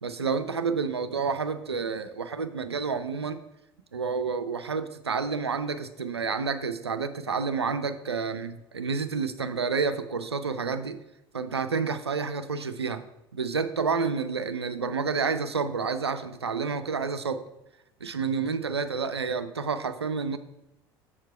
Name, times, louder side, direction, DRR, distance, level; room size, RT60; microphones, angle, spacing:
voice 1, 0.0-3.4 3.9-11.0 11.3-13.0 13.3-17.4 18.0-20.4, right 5 dB, 85° right, 11 dB, 0.4 m, -29 dB
7.0 x 4.5 x 4.7 m, 0.88 s
figure-of-eight pair, 65°, 13 cm